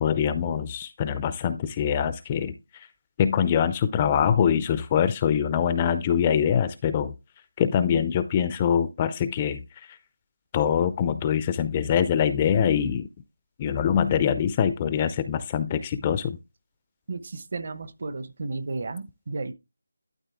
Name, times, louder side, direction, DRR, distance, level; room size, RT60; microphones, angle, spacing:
voice 1, 0.0-2.9 3.2-7.1 7.6-9.6 9.9-10.0 10.5-13.1 13.6-16.4, left 8 dB, 20° left, 0.4 m, -24 dB
voice 2, 17.1-19.5, right 3 dB, 45° right, 0.9 m, -33 dB
12.0 x 4.0 x 3.5 m
figure-of-eight pair, 170°, 0 cm